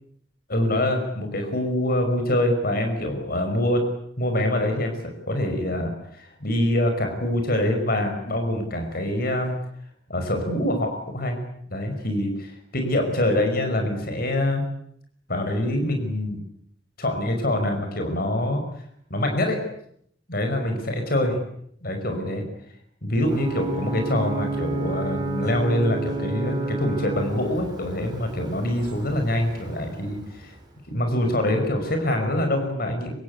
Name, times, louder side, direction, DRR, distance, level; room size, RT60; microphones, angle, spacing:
voice 1, 0.5-3.8 4.2-5.0 5.3-9.5 10.1-11.4 11.7-14.6 15.3-16.4 17.0-18.6 19.1-19.6 20.3-21.4 21.8-22.4 23.0-30.5 30.9-33.1, left 1 dB, 55° left, 5 dB, 5.6 m, -25 dB
Ocean / Boat Water vehicle / Alarm, 23.2-30.8, right 2 dB, 25° right, 5.2 m, -31 dB
26.0 x 24.5 x 8.4 m, 0.70 s
head